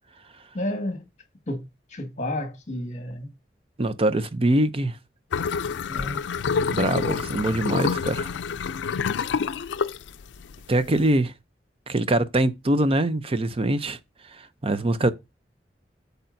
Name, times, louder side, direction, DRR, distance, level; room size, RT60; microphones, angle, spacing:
voice 1, 0.5-1.0 1.5-3.3 5.9-6.2, left 1 dB, 40° left, 1.8 m, -31 dB
voice 2, 3.8-4.9 6.7-8.3 10.7-11.3 11.9-14.0 14.6-15.1, right 1 dB, 35° right, 0.6 m, -23 dB
sound 1, 5.3-11.1, left 6 dB, 80° left, 0.4 m, -27 dB
8.7 x 6.7 x 2.7 m
head